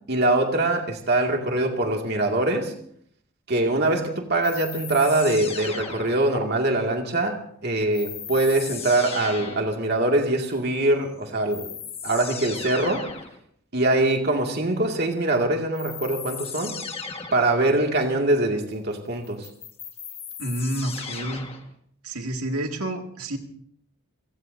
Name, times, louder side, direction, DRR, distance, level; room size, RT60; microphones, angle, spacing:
voice 1, 0.1-2.7 3.5-11.7 12.0-13.0 13.7-16.7 17.3-19.5, right 2 dB, 50° right, 2 dB, 2.2 m, -23 dB
sound 1, 4.4-6.5 7.9-9.8 11.0-11.1 11.5-13.4 15.7-17.5 19.2-21.7, left 6 dB, 25° left, 1.6 m, -36 dB
voice 2, 20.4-21.5 22.0-23.4, right 1 dB, 90° right, 3 dB, 2.2 m, -29 dB
29.0 x 17.5 x 2.7 m, 0.65 s
head